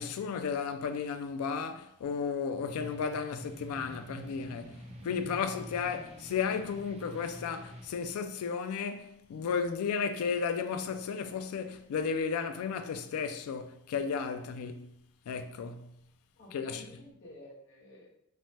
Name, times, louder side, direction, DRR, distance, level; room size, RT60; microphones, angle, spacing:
voice 1, 0.0-14.9 15.3-15.9 16.5-16.9, left 6 dB, 90° left, 0.3 m, -34 dB
sound 1, 2.8-7.9, right 1 dB, 30° right, 0.3 m, -47 dB
voice 2, 16.4-18.1, left 1 dB, 55° left, 0.8 m, -51 dB
3.1 x 2.1 x 2.7 m
head